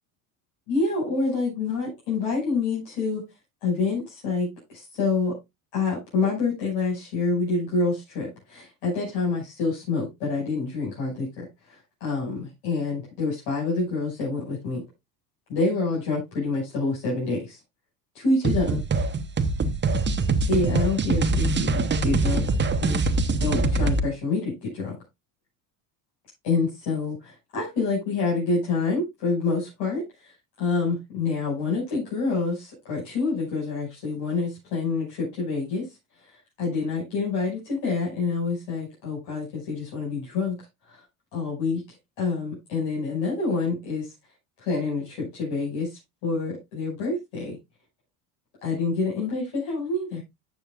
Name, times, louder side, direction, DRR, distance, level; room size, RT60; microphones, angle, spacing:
voice 1, 0.7-3.2 3.6-5.3 5.7-14.8 15.5-17.6 18.1-18.8 20.5-22.4 22.8-23.1 23.4-24.9 26.4-30.3 30.6-35.8 36.6-40.6 40.9-41.0 41.3-41.8 42.2-44.1 44.6-47.6 48.6-50.2, left 4 dB, 70° left, 6.2 m, -27 dB
sound 1, 18.4-24.1, right 3 dB, 25° right, 1.0 m, -23 dB
12.0 x 7.6 x 2.4 m
supercardioid pair, 90°, 46 cm